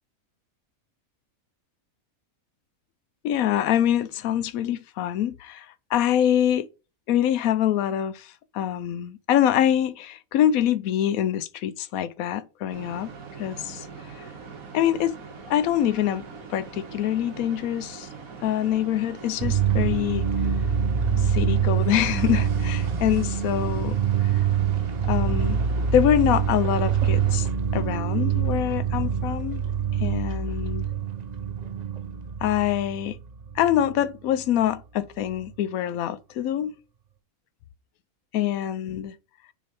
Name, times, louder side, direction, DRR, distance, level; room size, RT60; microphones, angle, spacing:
voice 1, 3.2-6.7 7.1-13.1 13.4-13.9 14.1-14.3 14.7-15.1 15.5-16.2 16.5-18.1 18.4-20.2 21.2-24.4 25.1-25.6 25.9-27.5 27.7-29.6 30.0-30.9 32.4-33.2 33.5-36.7 38.3-39.1, left 11 dB, 90° left, 1.0 m, -25 dB
sound 1, 12.7-27.4, right 5 dB, 75° right, 1.7 m, -42 dB
sound 2, 19.4-34.0 35.3-35.4, right 7 dB, 45° right, 0.5 m, -25 dB
6.3 x 3.8 x 4.3 m
omnidirectional pair, 1.5 m